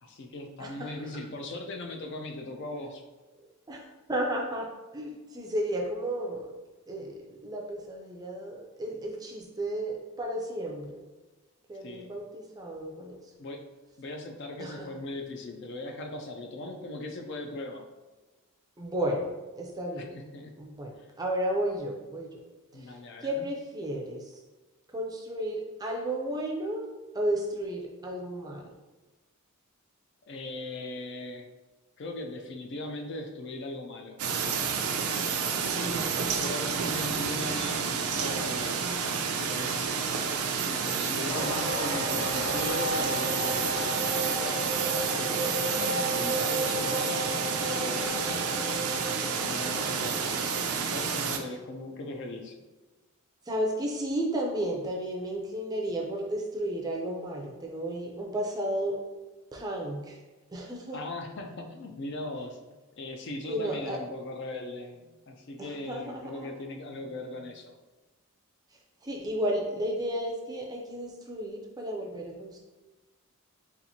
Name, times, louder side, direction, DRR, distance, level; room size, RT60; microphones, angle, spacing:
voice 1, 0.0-3.0 11.8-12.1 13.4-13.7 14.0-17.9 20.0-20.6 21.0-21.1 22.7-23.5 30.3-31.5 32.0-34.3 36.4-38.9 39.4-40.0 40.6-45.5 45.9-48.3 49.1-50.5 50.9-52.6 60.9-62.6 63.0-67.8, left 2 dB, 55° left, 4 dB, 0.4 m, -39 dB
voice 2, 0.6-1.0 3.7-4.7 4.9-6.5 6.9-11.0 11.7-13.2 14.6-14.9 18.8-19.3 19.6-20.2 20.6-22.4 22.7-24.3 24.9-26.8 27.1-28.7 35.6-36.5 53.5-59.0 59.5-60.2 60.5-61.0 63.5-64.0 65.6-66.5 69.0-72.6, right 1 dB, 15° right, 0 dB, 0.4 m, -33 dB
Fox Bark, 34.2-51.4, right 6 dB, 80° right, 0.4 m, -30 dB
sound 1, 41.3-50.6, equal, 70° left, 1.0 m, -34 dB
4.2 x 2.5 x 2.7 m, 1.2 s
head